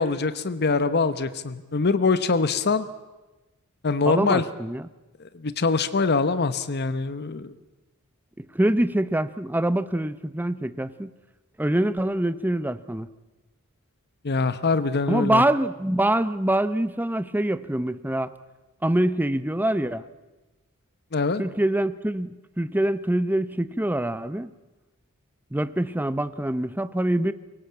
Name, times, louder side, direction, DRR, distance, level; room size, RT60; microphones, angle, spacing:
voice 1, 0.0-2.9 3.8-4.4 5.2-7.5 14.2-15.4 21.1-21.4, left 4 dB, 50° left, 0.9 m, -24 dB
voice 2, 4.1-4.9 8.5-11.1 11.6-13.1 15.1-18.3 18.8-20.0 21.4-24.5 25.5-27.3, right 1 dB, 10° right, 0.7 m, -24 dB
23.0 x 18.0 x 8.7 m
head